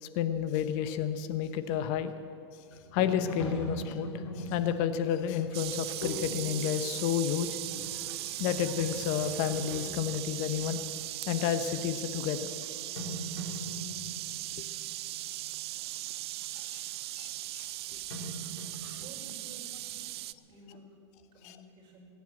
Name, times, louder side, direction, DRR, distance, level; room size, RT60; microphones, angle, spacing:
voice 1, 0.0-2.1 2.9-7.6 8.2-10.8 11.3-12.5 16.5-16.8 17.2-17.7 18.8-19.0 21.4-21.6, left 9 dB, 50° left, 10 dB, 1.0 m, -31 dB
sound 1, 2.7-10.9 11.4-11.8 12.6-12.7 13.0-15.5 18.1-19.9, equal, 80° left, 4.1 m, -41 dB
sound 2, 5.5-20.3, right 16 dB, 70° right, 0.5 m, -38 dB
voice 2, 18.7-20.2 20.5-20.9 21.3-22.1, right 1 dB, 35° right, -1 dB, 4.9 m, -53 dB
20.0 x 9.3 x 7.7 m, 2.4 s
hypercardioid pair, 125°, 14 cm